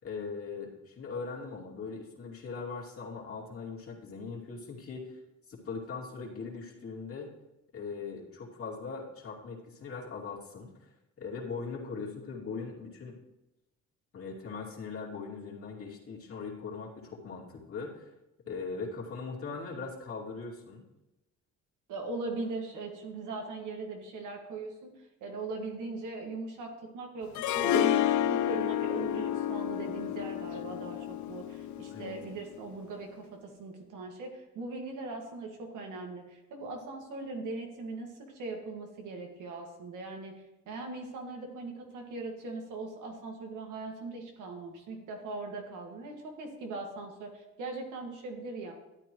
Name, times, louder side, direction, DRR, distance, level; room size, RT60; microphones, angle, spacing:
voice 1, 0.0-5.2 5.5-7.3 7.7-10.7 11.2-13.2 14.1-18.0 18.5-20.8 31.9-32.2, left 4 dB, 50° left, -4 dB, 2.6 m, -40 dB
voice 2, 21.9-48.7, right 3 dB, 85° right, 2 dB, 2.0 m, -40 dB
Harp, 27.4-32.4, left 11 dB, 70° left, 0.5 m, -30 dB
12.5 x 9.1 x 3.1 m, 0.95 s
cardioid pair, 90°, 30 cm